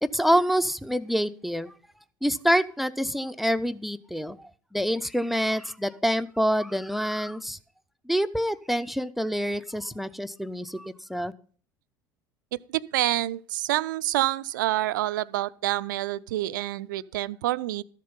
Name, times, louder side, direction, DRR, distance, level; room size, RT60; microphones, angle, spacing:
voice 1, 0.0-1.7 2.2-7.6 8.1-11.3, equal, ahead, 0.6 m, -26 dB
voice 2, 12.5-17.8, right 15 dB, 70° right, 0.4 m, -27 dB
13.5 x 7.5 x 5.5 m
figure-of-eight pair, 65°, 11 cm